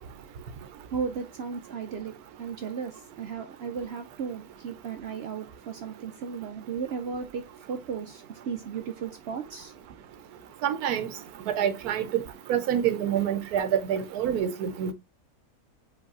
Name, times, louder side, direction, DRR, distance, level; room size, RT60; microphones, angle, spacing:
voice 1, 0.9-2.1 2.4-10.0, right 6 dB, 65° right, 0.6 m, -35 dB
voice 2, 10.6-11.1 11.5-12.2 12.5-14.9, right 9 dB, 85° right, 1.1 m, -27 dB
5.2 x 4.0 x 2.4 m
omnidirectional pair, 1.6 m